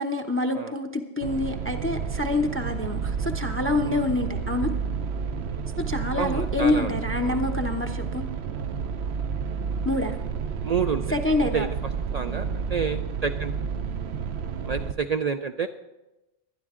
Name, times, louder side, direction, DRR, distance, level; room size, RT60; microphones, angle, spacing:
voice 1, 0.0-4.7 5.9-8.2 9.8-10.2 11.1-11.7, left 2 dB, 15° left, 4 dB, 0.6 m, -26 dB
sound 1, 1.2-14.9, right 6 dB, 70° right, 0.9 m, -30 dB
voice 2, 6.1-6.9 7.2-7.4 10.6-11.2 11.4-11.7 12.1-13.6 14.6-15.7, right 6 dB, 55° right, 8 dB, 0.4 m, -29 dB
22.5 x 9.7 x 3.7 m, 1.0 s
omnidirectional pair, 1.1 m